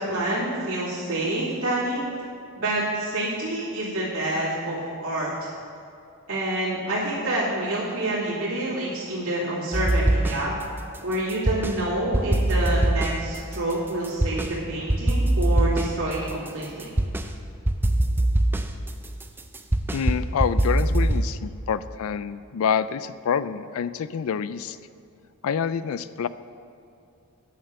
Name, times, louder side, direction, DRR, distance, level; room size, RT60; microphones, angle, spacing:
voice 1, 0.0-2.0 2.6-5.3 6.3-10.5 11.0-16.8, right 1 dB, 70° right, -10 dB, 2.6 m, -27 dB
sound 1, 9.7-10.6 10.9-11.8 12.1-14.5 14.9-17.3 17.7-21.3, right 1 dB, 10° right, 0.4 m, -23 dB
voice 2, 19.9-24.8 25.4-26.3, left 7 dB, 65° left, 14 dB, 0.3 m, -27 dB
9.3 x 6.7 x 6.5 m, 2.5 s
head